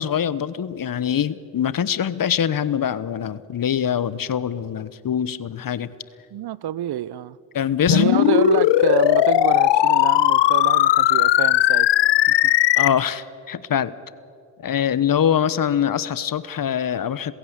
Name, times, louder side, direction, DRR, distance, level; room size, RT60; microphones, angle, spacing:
voice 1, 0.0-5.9 7.5-8.0 12.8-13.9 14.6-17.3, left 9 dB, 45° left, 1.1 m, -23 dB
voice 2, 6.3-7.4 7.9-11.9 12.3-12.4, right 12 dB, 55° right, 0.8 m, -27 dB
sound 1, 7.9-12.9, left 14 dB, 65° left, 0.9 m, -17 dB
27.0 x 16.5 x 8.2 m
hypercardioid pair, 50°, 46 cm